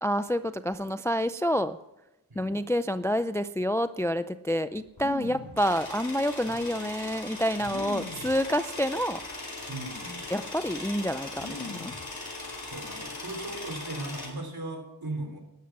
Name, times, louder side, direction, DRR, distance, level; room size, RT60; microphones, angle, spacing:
voice 1, 0.0-1.8 2.4-9.2 10.3-11.9, equal, 5° left, 13 dB, 0.4 m, -28 dB
sound 1, 4.9-5.6 6.5-6.6 7.6-8.4 9.2-9.4 9.7-10.2 11.4-12.1 12.4-13.0, left 3 dB, 40° left, 1.6 m, -42 dB
sound 2, 5.6-14.3, left 2 dB, 60° left, 4.7 m, -39 dB
voice 2, 9.7-10.2 12.6-15.4, right 2 dB, 55° right, 4 dB, 3.3 m, -38 dB
12.0 x 12.0 x 5.9 m, 0.92 s
wide cardioid pair, 60°, 44 cm